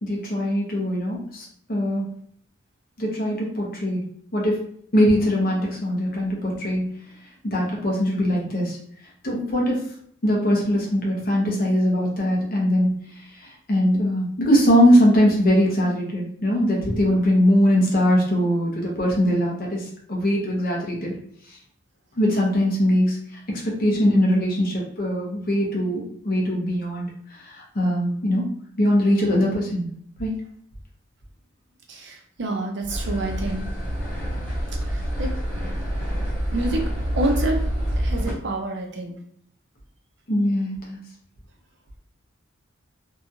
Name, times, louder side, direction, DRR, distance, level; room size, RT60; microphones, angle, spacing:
voice 1, 0.0-2.0 3.0-4.0 4.3-4.6 4.9-6.9 7.4-8.8 9.2-9.8 10.2-12.9 13.4-21.1 22.2-23.2 23.6-27.1 27.4-28.5 28.8-29.8 30.2-30.3 40.3-41.0, equal, 45° left, -2 dB, 0.8 m, -21 dB
voice 2, 31.9-33.7 34.9-35.3 36.5-36.8 37.2-37.6 38.0-39.2, right 2 dB, 60° right, 2 dB, 0.6 m, -27 dB
sound 1, 32.9-38.3, equal, 10° left, 1.3 m, -27 dB
2.8 x 2.3 x 2.7 m, 0.64 s
head